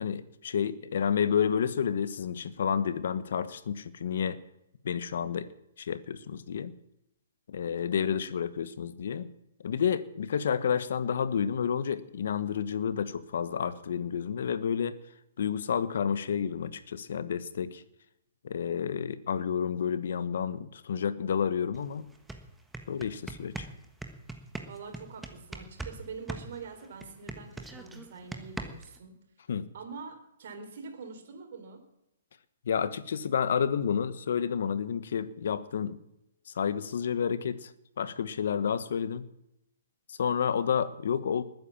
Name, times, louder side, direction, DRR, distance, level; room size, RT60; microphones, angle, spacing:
voice 1, 0.0-4.4 4.8-5.5 5.8-6.7 7.5-9.3 9.6-15.0 15.4-17.8 18.4-22.1 22.9-23.7 29.5-29.7 32.6-36.0 36.5-37.7 38.0-39.2 40.1-41.4, left 7 dB, 65° left, 14 dB, 1.3 m, -30 dB
sound 1, 21.7-21.8 22.1-26.0 26.3-29.0, right 2 dB, 5° right, 1.3 m, -40 dB
voice 2, 24.6-29.1 29.7-31.8, right 5 dB, 55° right, 5 dB, 4.3 m, -44 dB
20.0 x 9.5 x 7.3 m, 0.85 s
hypercardioid pair, 160°, 0 cm